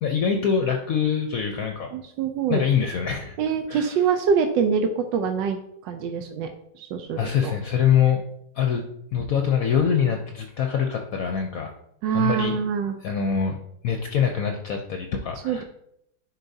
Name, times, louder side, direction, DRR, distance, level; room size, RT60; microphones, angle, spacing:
voice 1, 0.0-1.9 2.5-3.4 3.7-4.0 7.2-8.2 8.5-8.8 9.1-11.7 12.1-12.6 13.0-13.6 13.8-15.6, left 7 dB, 65° left, 3 dB, 0.9 m, -24 dB
voice 2, 1.9-2.6 3.4-7.5 12.0-13.0 15.4-15.6, right 6 dB, 90° right, 6 dB, 1.3 m, -25 dB
10.5 x 4.6 x 2.7 m, 0.76 s
omnidirectional pair, 1.9 m